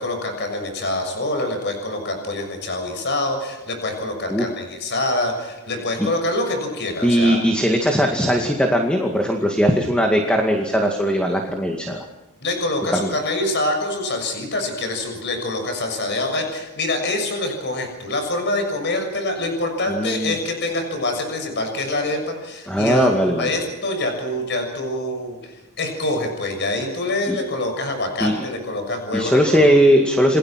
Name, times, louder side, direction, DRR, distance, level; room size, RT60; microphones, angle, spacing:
voice 1, 0.0-7.4 12.4-25.5 25.8-29.6, left 2 dB, 50° left, 5 dB, 6.7 m, -25 dB
voice 2, 7.0-12.1 12.9-13.1 19.9-20.4 22.7-23.5 27.3-27.4 28.2-28.4 29.1-30.4, equal, 5° left, 2 dB, 2.2 m, -19 dB
29.0 x 21.0 x 6.0 m, 1.0 s
head